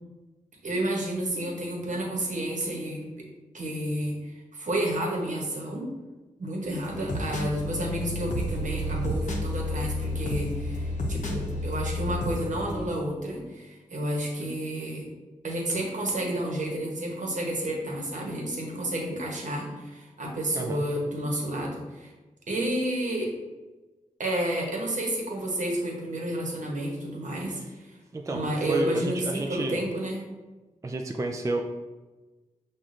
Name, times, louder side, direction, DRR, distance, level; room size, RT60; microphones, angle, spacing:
voice 1, 0.6-3.1 3.5-5.8 6.4-15.1 15.4-22.1 22.5-23.3 24.2-28.0 28.3-30.2, right 1 dB, 65° right, -1 dB, 1.0 m, -30 dB
sound 1, 6.6-12.9, left 1 dB, 60° left, 0.7 m, -31 dB
voice 2, 28.1-29.9 30.8-31.6, right 2 dB, 20° right, 3 dB, 0.3 m, -31 dB
5.9 x 2.4 x 2.5 m, 1.2 s
cardioid pair, 50°, 14 cm